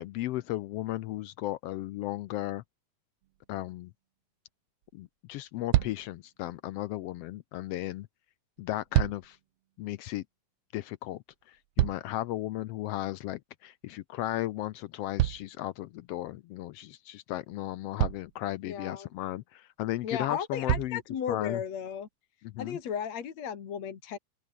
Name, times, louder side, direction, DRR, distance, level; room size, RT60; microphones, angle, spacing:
voice 1, 0.0-2.6 3.5-3.9 4.9-8.1 8.6-9.4 9.8-10.2 10.7-21.0 21.3-21.6 22.5-22.8, left 15 dB, 80° left, 1.4 m, -35 dB
sound 1, 3.2-3.4 4.8-4.9 5.3-5.4 5.7-6.2 8.6-9.4 11.3-12.4 15.2-16.2 17.3-17.4 18.0-18.4 19.9-20.0 20.7-21.1 21.9-22.0, right 15 dB, 70° right, 1.6 m, -29 dB
voice 2, 18.6-19.1 20.0-22.1 22.6-24.2, left 8 dB, 65° left, 3.4 m, -35 dB
open air
omnidirectional pair, 3.4 m